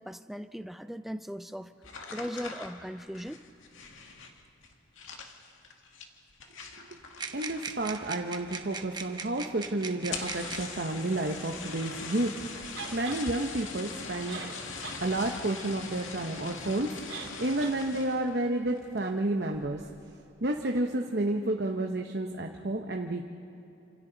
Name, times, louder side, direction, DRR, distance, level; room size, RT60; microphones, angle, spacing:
voice 1, 0.0-1.7 2.1-3.4, equal, ahead, 10 dB, 0.5 m, -38 dB
sound 1, 1.8-7.9 8.2-8.7 9.0-9.1 9.4-9.5 10.0-18.3 18.7-19.1 19.5-19.9, left 4 dB, 85° left, 2.1 m, -42 dB
sound 2, 7.2-10.8 11.8-11.9 12.6-13.4, right 4 dB, 20° right, 1.0 m, -40 dB
voice 2, 7.3-14.5 15.0-19.9 20.4-23.2, right 2 dB, 55° right, 3 dB, 1.0 m, -31 dB
sound 3, 12.8-13.2 14.0-14.1 14.3-15.0 15.4-15.5 17.1-17.3 17.6-17.8, right 5 dB, 85° right, 2.8 m, -41 dB
29.0 x 27.5 x 4.0 m, 2.8 s
head